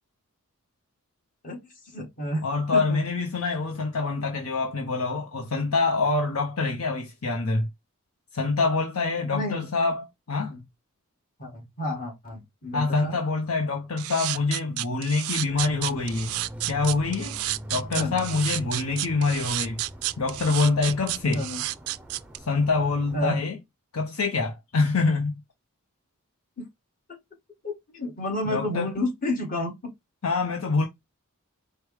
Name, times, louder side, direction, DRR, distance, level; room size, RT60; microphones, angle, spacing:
voice 1, 1.9-2.5 2.7-3.0 9.3-9.7 10.5-10.6 11.4-13.2 18.0-18.2 21.2-21.6 23.1-23.4 26.6-26.7 27.1-27.2 27.6-29.7, left 1 dB, 40° left, 1.7 m, -30 dB
voice 2, 2.4-7.7 8.3-10.5 12.7-16.3 16.7-17.4 17.7-19.8 20.2-21.5 22.4-23.6 23.9-25.4 28.5-28.9 30.2-30.9, left 3 dB, 85° left, 0.8 m, -25 dB
sound 1, 14.0-22.4, right 17 dB, 80° right, 0.3 m, -31 dB
sound 2, 15.5-23.3, equal, 5° right, 0.5 m, -42 dB
4.8 x 2.2 x 4.7 m
head